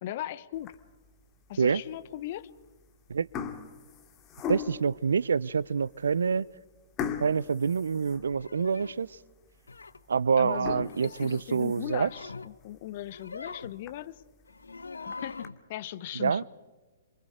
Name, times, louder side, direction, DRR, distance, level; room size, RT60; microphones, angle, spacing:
voice 1, 0.0-0.7 1.5-2.5 10.4-14.2 15.1-16.4, left 13 dB, 50° left, 1.2 m, -38 dB
sound 1, 0.5-1.1 1.6-1.7 2.6-2.8 3.1-5.0 5.6-5.7 6.0-6.2 7.0-8.7 9.1-9.2 9.7-9.8 10.4-12.1 12.5-12.6 13.0-13.1 13.5-13.6 13.9-14.0 14.9-15.5, left 7 dB, 25° left, 2.4 m, -38 dB
voice 2, 4.5-6.5 7.2-9.1 10.1-12.1 16.2-16.4, right 6 dB, 75° right, 0.7 m, -26 dB
sound 2, 8.3-9.0 9.7-10.0 10.8-11.5 11.9-12.5 13.0-13.8 14.5-15.6, left 4 dB, 85° left, 1.0 m, -43 dB
27.5 x 24.5 x 5.0 m
figure-of-eight pair, 120°, 0 cm